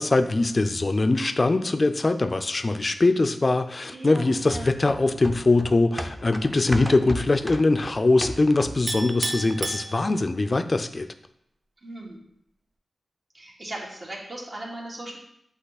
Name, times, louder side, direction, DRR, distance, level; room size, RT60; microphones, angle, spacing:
voice 1, 0.0-11.1, left 2 dB, 45° left, 9 dB, 0.5 m, -22 dB
voice 2, 3.9-4.7 11.8-12.2 13.3-15.2, right 1 dB, 55° right, -3 dB, 1.7 m, -38 dB
sound 1, 4.5-9.0 9.3-9.4, equal, ahead, 0.6 m, -35 dB
Chink clink, 8.9-10.5, right 3 dB, 70° right, 0.6 m, -33 dB
7.9 x 2.9 x 4.1 m, 0.77 s
cardioid pair, 45°, 0 cm